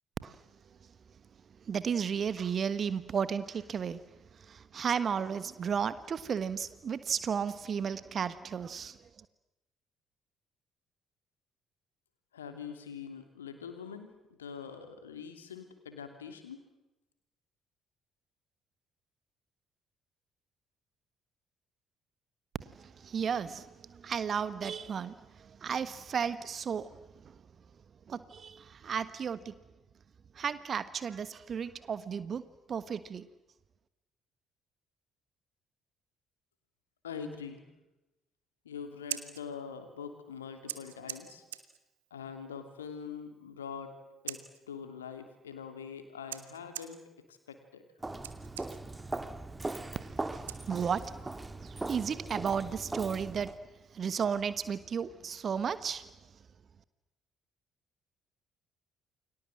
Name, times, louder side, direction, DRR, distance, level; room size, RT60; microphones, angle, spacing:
voice 1, 1.7-4.0 4.4-9.0 22.6-26.9 28.1-29.5 30.3-32.4 32.7-33.3 50.0-51.3 51.6-53.5 53.9-56.1, right 7 dB, 45° right, 1.3 m, -34 dB
voice 2, 12.3-14.1 14.4-16.6 37.0-37.6 38.6-41.4 42.1-43.9 44.2-47.0 47.3-47.8, left 6 dB, 80° left, 2.9 m, -43 dB
Scissors, 38.8-51.2, right 12 dB, 75° right, 1.4 m, -48 dB
Walk footsteps, 48.0-53.6, right 2 dB, 20° right, 2.0 m, -40 dB
29.0 x 24.5 x 7.7 m
figure-of-eight pair, 45°, 0 cm